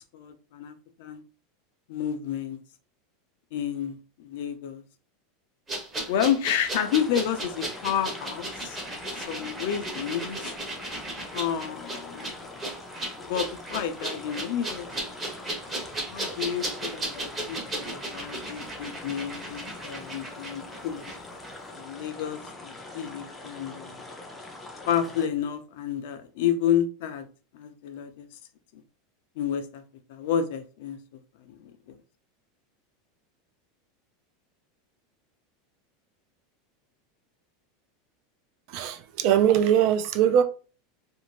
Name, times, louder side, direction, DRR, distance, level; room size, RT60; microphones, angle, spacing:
voice 1, 0.1-1.2 1.9-2.6 3.5-4.8 6.1-8.8 9.1-10.5 11.3-12.5 13.3-15.2 16.1-21.0 21.7-24.0 24.9-27.3 27.5-28.3 28.7-28.8 29.4-29.8 30.1-31.0 31.5-32.0, left 9 dB, 65° left, 0.5 m, -30 dB
sound 1, 5.7-21.2 21.4-21.6, right 1 dB, 15° right, 0.8 m, -36 dB
sound 2, 6.7-25.3, left 2 dB, 10° left, 0.5 m, -43 dB
voice 2, 38.7-40.4, right 9 dB, 50° right, 0.3 m, -21 dB
2.6 x 2.1 x 3.1 m
supercardioid pair, 155°, 0 cm